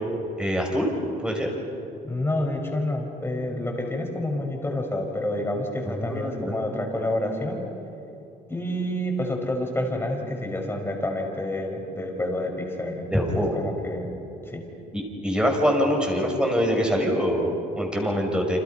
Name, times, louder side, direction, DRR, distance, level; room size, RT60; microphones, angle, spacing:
voice 1, 0.4-0.9 1.2-1.5 5.9-6.6 13.1-13.6 14.9-18.6, equal, 5° right, 1 dB, 5.8 m, -24 dB
voice 2, 2.0-7.6 8.5-14.1 14.5-14.6, left 1 dB, 15° left, 2 dB, 5.4 m, -28 dB
29.5 x 27.5 x 5.8 m, 2.9 s
cardioid pair, 110°, 17 cm